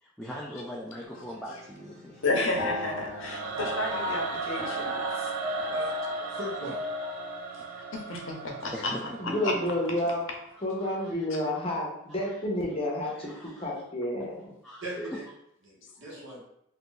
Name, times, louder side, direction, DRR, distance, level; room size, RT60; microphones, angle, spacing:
voice 1, 0.0-2.2 8.7-9.6 10.8-11.2 12.2-12.4 13.1-13.7 14.6-15.2 16.0-16.1, equal, ahead, -5 dB, 0.3 m, -41 dB
sound 1, 1.0-10.0, left 3 dB, 35° right, 0.9 m, -38 dB
voice 2, 2.2-5.3 7.7-8.9 9.4-9.5 16.1-16.2, left 2 dB, 65° left, 1 dB, 0.7 m, -32 dB
Singing / Musical instrument, 3.1-10.2, right 5 dB, 75° right, 0.4 m, -36 dB
voice 3, 6.3-6.8 9.4-9.5 14.8-15.2 15.6-16.4, right 1 dB, 60° right, -5 dB, 1.1 m, -38 dB
voice 4, 9.2-10.2 10.6-14.5, left 1 dB, 25° left, -1 dB, 0.7 m, -30 dB
2.7 x 2.5 x 3.8 m, 0.74 s
head